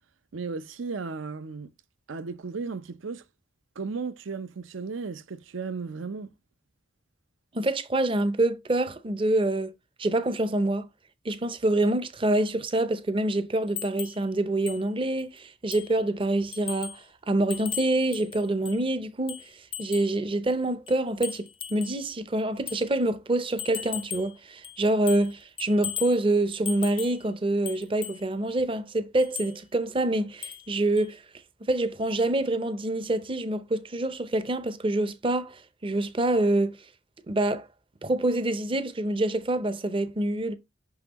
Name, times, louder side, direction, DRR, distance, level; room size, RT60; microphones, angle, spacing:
voice 1, 0.3-1.7 2.1-3.2 3.8-6.3, right 4 dB, 80° right, 0.6 m, -35 dB
voice 2, 7.5-9.7 10.0-10.9 11.2-19.4 19.8-31.2 31.6-36.8 37.3-37.7 38.0-40.5, right 2 dB, 25° right, 0.6 m, -26 dB
sound 1, 13.8-14.2 14.7-14.8 15.2-15.3 15.7-16.0 16.5-17.0 17.5-18.8 19.3-20.2 20.9-22.0 22.7-22.9 23.6-24.4 24.6-25.3 25.6-26.2 26.7-27.2 27.7-28.2 29.2-29.6 30.4-30.7 31.0-31.1, left 8 dB, 25° left, 0.4 m, -37 dB
5.9 x 5.7 x 2.9 m
head